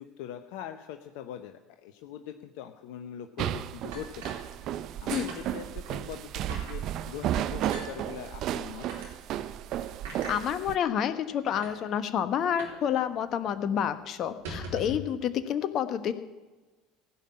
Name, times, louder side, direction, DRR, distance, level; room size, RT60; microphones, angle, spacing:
voice 1, 0.0-4.4 5.0-8.8, left 10 dB, 70° left, 7 dB, 0.8 m, -42 dB
sound 1, 3.4-10.8, right 11 dB, 55° right, 0.6 m, -33 dB
sound 2, 3.9-5.0 5.3-5.4 5.8-6.0 6.5-6.8 7.6-7.9 8.8-9.1 10.0-10.4 11.1-11.2 11.5-11.7 12.6-12.8 13.1-13.2 13.5-13.7 14.3-15.1, right 1 dB, 75° right, 3.7 m, -40 dB
voice 2, 10.3-16.1, left 9 dB, 50° left, 11 dB, 1.2 m, -29 dB
16.5 x 5.7 x 9.7 m, 1.2 s
hypercardioid pair, 70°, 0 cm